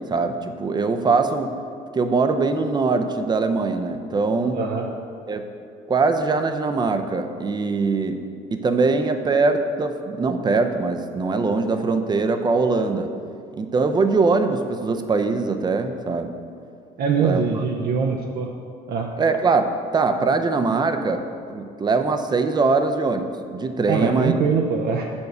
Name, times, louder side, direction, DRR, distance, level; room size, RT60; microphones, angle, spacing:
voice 1, 0.0-1.5 1.9-4.6 5.3-5.5 5.9-8.2 8.5-13.1 13.5-16.3 17.2-17.6 19.2-21.2 21.5-24.3, right 4 dB, 25° right, 7 dB, 0.6 m, -22 dB
voice 2, 4.5-4.9 17.0-18.5 18.9-19.1 23.9-25.0, right 5 dB, 65° right, 0 dB, 0.7 m, -23 dB
7.1 x 4.7 x 6.7 m, 2.4 s
cardioid pair, 110°, 17 cm